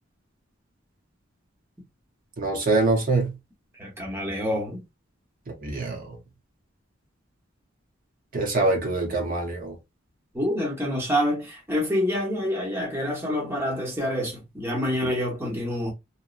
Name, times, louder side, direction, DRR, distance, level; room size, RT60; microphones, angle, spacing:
voice 1, 2.4-3.3 5.6-6.0 8.3-9.7, right 3 dB, 45° right, 0.8 m, -24 dB
voice 2, 3.8-4.8 10.3-15.9, equal, 15° right, 0.9 m, -27 dB
2.9 x 2.1 x 2.4 m
head